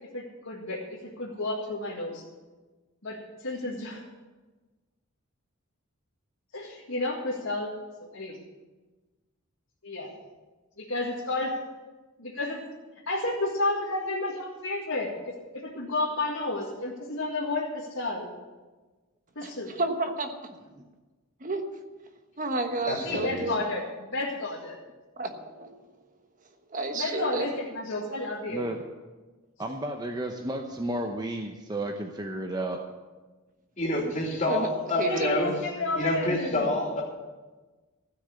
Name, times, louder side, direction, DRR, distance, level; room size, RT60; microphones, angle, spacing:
voice 1, 0.1-2.2 3.0-4.0 6.5-7.7 8.0-8.4 9.8-10.1 10.8-11.6 12.2-12.6 13.1-15.3 15.6-18.3 19.4-19.7 23.0-24.8 26.9-28.7 35.0-36.8, left 2 dB, 70° left, -5 dB, 2.1 m, -31 dB
voice 2, 19.8-20.4 21.4-21.6 22.4-23.7 25.2-25.7 26.7-27.4 34.5-34.7 35.0-35.4, right 2 dB, 40° right, 6 dB, 1.3 m, -30 dB
voice 3, 22.9-23.4 33.8-35.5 35.9-37.0, left 2 dB, 30° left, -3 dB, 2.9 m, -28 dB
voice 4, 29.6-32.8, right 1 dB, 20° right, 3 dB, 0.8 m, -32 dB
15.0 x 6.6 x 8.4 m, 1.3 s
head